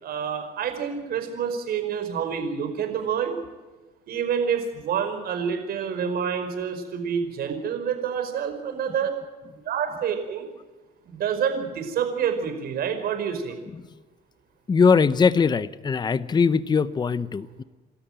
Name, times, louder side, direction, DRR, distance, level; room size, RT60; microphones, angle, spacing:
voice 1, 0.0-3.3 4.1-9.1 9.6-10.5 11.0-13.6, right 7 dB, 65° right, 6 dB, 5.0 m, -27 dB
voice 2, 14.7-17.6, left 5 dB, 25° left, 16 dB, 0.8 m, -21 dB
28.5 x 13.0 x 8.9 m, 1.2 s
cardioid pair, 110°, 17 cm